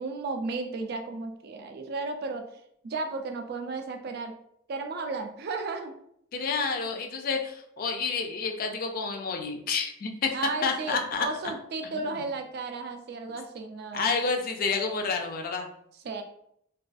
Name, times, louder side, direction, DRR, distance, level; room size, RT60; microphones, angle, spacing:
voice 1, 0.0-4.3 4.7-5.9 10.3-14.1 16.0-16.2, right 3 dB, 50° right, 5 dB, 0.3 m, -34 dB
voice 2, 6.3-10.3 10.6-11.3 11.8-12.2 13.9-15.7, left 4 dB, 45° left, 4 dB, 0.4 m, -29 dB
2.3 x 2.3 x 2.4 m, 0.71 s
head